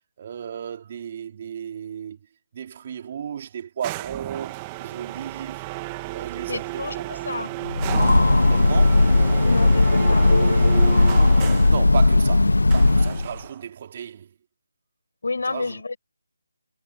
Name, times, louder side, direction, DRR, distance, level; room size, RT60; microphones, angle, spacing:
voice 1, 0.2-2.2 2.5-5.6 6.1-7.3 8.5-9.1 11.3-14.3 15.4-15.8, right 8 dB, 35° right, 4.1 m, -35 dB
sound 1, 3.8-11.8 12.7-13.6, right 22 dB, 20° right, 1.7 m, -34 dB
voice 2, 6.5-7.5 9.4-10.3 15.2-16.0, left 3 dB, 70° left, 6.9 m, -30 dB
Train, 7.6-13.4, left 2 dB, 90° left, 0.5 m, -17 dB
figure-of-eight pair, 160°, 0 cm